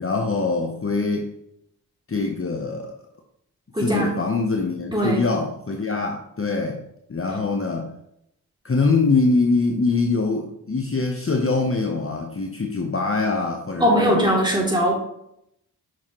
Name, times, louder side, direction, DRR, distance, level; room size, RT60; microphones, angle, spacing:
voice 1, 0.0-1.3 2.1-2.9 3.8-6.8 7.1-7.9 8.6-14.2, left 3 dB, 35° left, 2 dB, 1.0 m, -23 dB
voice 2, 3.7-4.1 4.9-5.2 13.8-14.9, equal, 10° right, -3 dB, 2.8 m, -20 dB
6.4 x 6.2 x 3.1 m, 0.77 s
cardioid pair, 45°, 39 cm